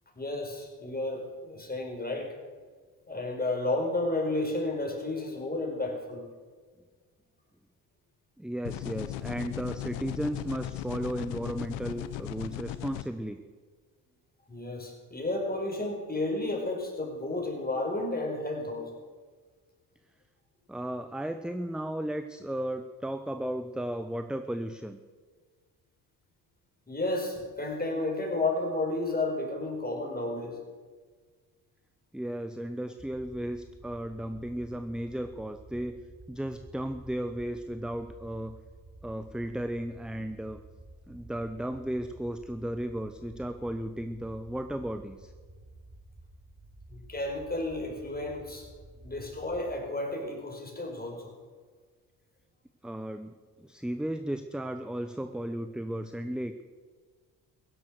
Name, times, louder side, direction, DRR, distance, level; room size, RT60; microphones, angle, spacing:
voice 1, 0.1-2.3 3.1-6.2 14.5-19.0 26.9-30.6 46.9-48.7 49.0-51.3, left 2 dB, 20° left, 1 dB, 5.0 m, -32 dB
voice 2, 8.4-13.4 20.7-25.0 32.1-36.0 36.3-38.6 39.0-40.6 41.1-45.3 52.8-56.6, right 1 dB, ahead, 9 dB, 0.8 m, -35 dB
sound 1, 8.7-13.0, left 14 dB, 80° left, 0.9 m, -37 dB
sound 2, 33.0-49.8, right 2 dB, 30° right, 4.5 m, -52 dB
15.5 x 11.0 x 6.6 m, 1.5 s
supercardioid pair, 60°, 43 cm